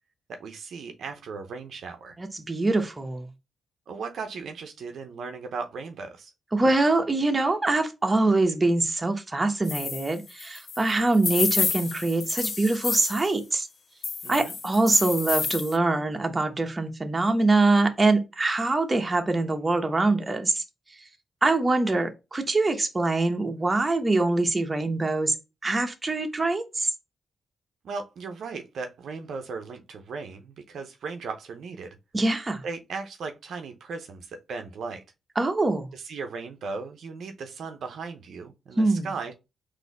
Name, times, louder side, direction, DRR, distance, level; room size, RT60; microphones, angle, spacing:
voice 1, 0.3-2.1 3.9-6.3 14.2-14.6 27.8-32.0 32.6-35.0 35.9-39.3, right 4 dB, 75° right, 0.7 m, -37 dB
voice 2, 2.2-3.3 6.5-13.7 14.3-20.6 21.4-25.4 25.6-26.9 32.1-32.6 35.4-35.9 38.8-39.1, right 2 dB, 30° right, 1.0 m, -24 dB
sound 1, 9.6-13.3 14.0-15.8, left 5 dB, 55° left, 0.5 m, -30 dB
4.0 x 2.7 x 4.0 m
cardioid pair, 55°, 0 cm